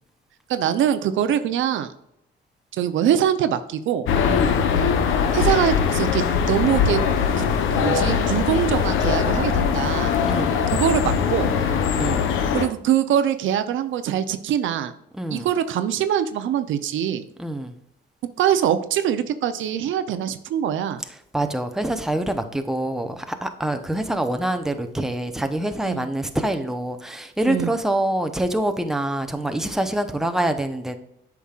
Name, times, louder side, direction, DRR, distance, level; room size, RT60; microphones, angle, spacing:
voice 1, 0.5-1.9 2.7-4.1 5.3-7.0 7.4-7.5 7.7-10.1 10.7-11.5 12.5-14.9 15.3-17.2 18.4-21.0 25.9-26.1 27.5-27.7, right 10 dB, 75° right, 11 dB, 0.6 m, -23 dB
sound 1, 4.1-12.7, left 6 dB, 85° left, 0.8 m, -21 dB
voice 2, 4.3-4.6 10.3-10.5 12.0-12.3 15.1-15.5 17.4-17.7 21.3-31.0, right 1 dB, ahead, 6 dB, 0.8 m, -25 dB
8.2 x 5.9 x 2.4 m, 0.77 s
cardioid pair, 90°, 20 cm